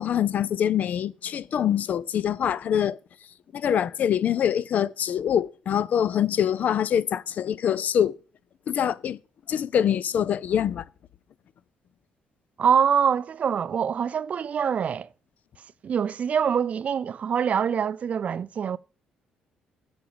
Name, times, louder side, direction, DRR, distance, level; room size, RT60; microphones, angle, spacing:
voice 1, 0.0-3.0 3.5-8.2 8.7-9.2 9.5-10.8, left 9 dB, 60° left, 0.4 m, -24 dB
voice 2, 12.6-15.1 15.8-18.8, right 7 dB, 50° right, 0.4 m, -24 dB
8.5 x 5.2 x 7.0 m
supercardioid pair, 75°, 3 cm